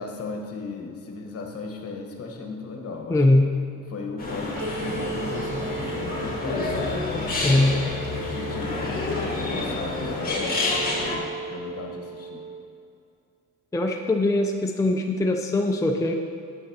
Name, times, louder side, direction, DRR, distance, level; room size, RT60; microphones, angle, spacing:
voice 1, 0.0-3.2 3.9-7.6 8.3-11.2 11.5-12.4, left 3 dB, 50° left, 2 dB, 1.3 m, -36 dB
voice 2, 3.1-3.5 7.4-7.7 13.7-16.1, left 2 dB, 10° left, 3 dB, 0.5 m, -21 dB
sound 1, 4.2-11.2, left 2 dB, 30° left, 1.7 m, -29 dB
sound 2, 4.6-12.6, right 4 dB, 80° right, 1.5 m, -37 dB
sound 3, 5.5-10.7, left 8 dB, 80° left, 0.6 m, -38 dB
9.8 x 7.7 x 2.9 m, 2.5 s
cardioid pair, 90°, 30 cm